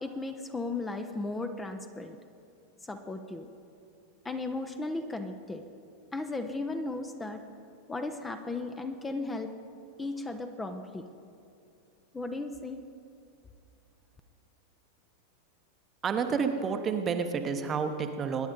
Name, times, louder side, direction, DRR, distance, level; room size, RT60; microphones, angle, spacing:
voice 1, 0.0-2.2 2.8-3.5 4.2-5.6 6.1-7.4 7.9-9.5 10.0-11.1 12.1-12.8, left 2 dB, 10° left, 7 dB, 0.7 m, -35 dB
voice 2, 16.0-18.5, right 6 dB, 25° right, 7 dB, 1.0 m, -30 dB
22.5 x 10.5 x 3.9 m, 2.5 s
figure-of-eight pair, 90°, 0 cm